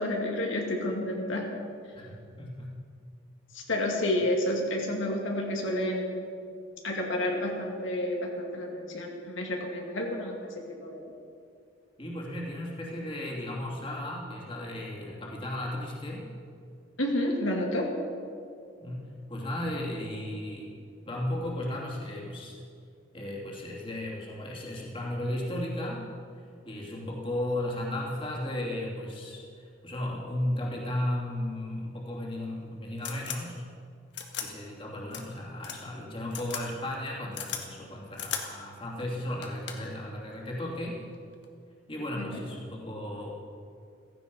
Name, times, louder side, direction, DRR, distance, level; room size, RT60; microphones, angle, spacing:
voice 1, 0.0-1.5 3.5-6.3 6.8-11.1 17.0-17.9 42.1-42.4, left 1 dB, 80° left, 0 dB, 2.4 m, -30 dB
voice 2, 1.9-2.8 12.0-16.3 18.8-20.8 21.0-22.7 23.1-26.1 26.6-33.6 34.4-41.0 41.9-43.3, left 1 dB, 25° left, -3 dB, 2.8 m, -35 dB
sound 1, 32.3-32.4 33.0-33.4 34.1-34.5 35.1-35.2 35.6-35.8 36.3-36.6 36.9-37.6 38.1-38.4 39.0-39.1 39.4-39.9 41.1-41.4, left 8 dB, 60° left, 1.8 m, -36 dB
16.5 x 15.5 x 5.4 m, 2.3 s
head